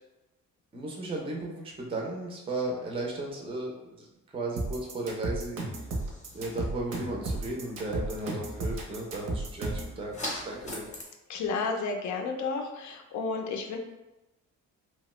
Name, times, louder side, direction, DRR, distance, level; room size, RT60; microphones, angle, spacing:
voice 1, 0.7-5.9 6.3-10.9, right 2 dB, 20° right, -2 dB, 0.5 m, -35 dB
sound 1, 4.6-9.9, right 2 dB, 75° right, 0.7 m, -33 dB
sound 2, 5.9-11.0, left 1 dB, 25° left, 0.7 m, -43 dB
voice 2, 11.3-13.8, left 4 dB, 65° left, 3 dB, 0.5 m, -32 dB
2.8 x 2.2 x 3.0 m, 1.0 s
cardioid pair, 145°, 31 cm